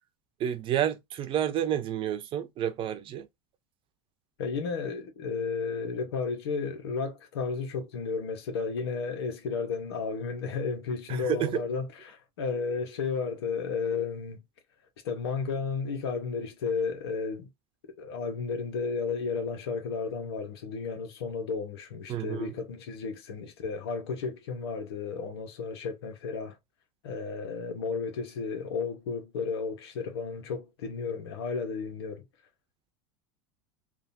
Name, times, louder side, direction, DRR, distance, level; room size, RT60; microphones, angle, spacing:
voice 1, 0.4-3.3 11.1-11.6 22.1-22.5, right 10 dB, 40° right, 0.8 m, -30 dB
voice 2, 4.4-14.4 15.0-17.5 18.0-26.6 27.0-32.2, left 5 dB, 85° left, 1.4 m, -33 dB
3.6 x 2.7 x 2.8 m
supercardioid pair, 110°, 13 cm